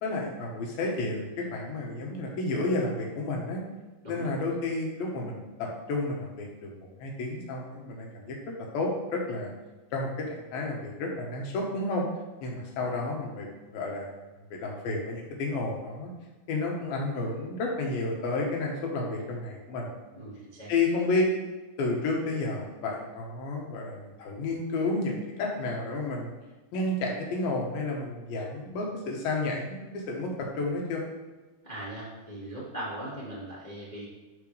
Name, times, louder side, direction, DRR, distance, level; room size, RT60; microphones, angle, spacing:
voice 1, 0.0-3.6 4.1-6.7 7.0-8.4 8.7-9.5 9.9-12.1 12.4-14.1 14.5-16.1 16.5-19.9 20.7-21.3 21.8-26.3 26.7-31.0, left 2 dB, 70° left, -1 dB, 3.0 m, -31 dB
voice 2, 20.1-20.7 31.6-34.1, right 1 dB, 45° left, -7 dB, 0.5 m, -39 dB
12.5 x 4.7 x 3.3 m, 1.2 s
omnidirectional pair, 4.5 m